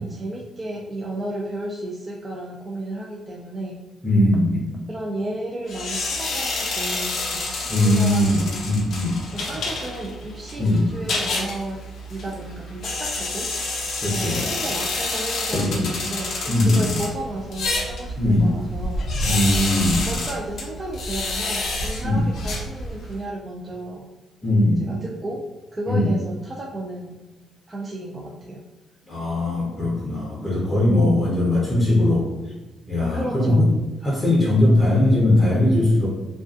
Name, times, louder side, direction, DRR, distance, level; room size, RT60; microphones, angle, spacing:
voice 1, 0.0-3.8 4.9-8.6 9.3-11.8 12.1-13.5 14.1-19.1 20.1-24.1 24.8-25.5 25.7-27.2 27.7-28.6 33.1-33.6, right 1 dB, 25° right, -2 dB, 0.3 m, -33 dB
voice 2, 4.0-4.8 7.7-9.2 10.6-10.8 14.0-14.4 15.5-15.9 16.5-17.0 18.2-18.5 19.3-20.1 22.0-22.3 24.4-25.0 25.9-26.1 29.0-32.3 32.9-36.1, left 1 dB, 20° left, -5 dB, 0.6 m, -20 dB
sound 1, 5.7-23.2, left 2 dB, 65° left, 0.5 m, -28 dB
2.4 x 2.3 x 2.4 m, 1.1 s
cardioid pair, 90°, 0 cm